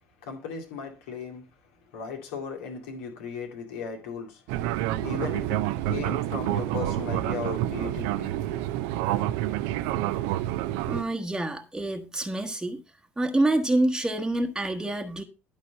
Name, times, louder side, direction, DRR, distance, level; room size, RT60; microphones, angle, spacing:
voice 1, 0.2-1.4 1.9-4.4 5.0-5.6 5.9-8.6, left 6 dB, 65° left, 2.2 m, -36 dB
Fixed-wing aircraft airplane, 4.5-11.0, right 14 dB, 60° right, 0.6 m, -28 dB
voice 2, 10.9-12.8 13.2-15.2, right 1 dB, 10° right, 1.3 m, -27 dB
12.0 x 5.3 x 5.4 m
figure-of-eight pair, 60°, 7 cm